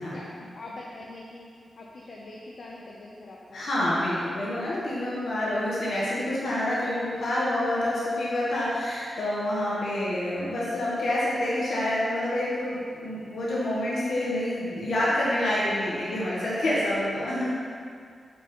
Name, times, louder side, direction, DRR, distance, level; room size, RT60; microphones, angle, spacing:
voice 1, 0.0-1.5 1.8-3.8 5.0-5.1, left 2 dB, 50° left, -3 dB, 0.6 m, -44 dB
voice 2, 3.5-17.6, left 1 dB, 80° left, -7 dB, 1.2 m, -27 dB
5.5 x 5.0 x 3.6 m, 2.2 s
wide cardioid pair, 140°, 0 cm